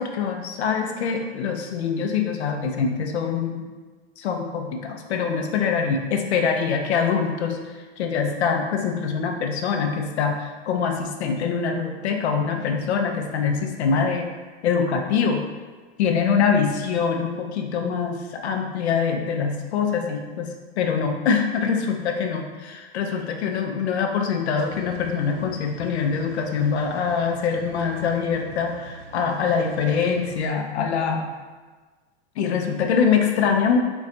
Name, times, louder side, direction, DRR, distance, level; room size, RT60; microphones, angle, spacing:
voice 1, 0.0-3.7 4.2-14.3 14.6-15.5 16.0-31.3 32.4-33.8, left 6 dB, 90° left, 4 dB, 0.5 m, -24 dB
sound 1, 24.5-30.4, right 4 dB, 75° right, 0.5 m, -45 dB
4.0 x 2.2 x 2.5 m, 1.4 s
hypercardioid pair, 130°, 32 cm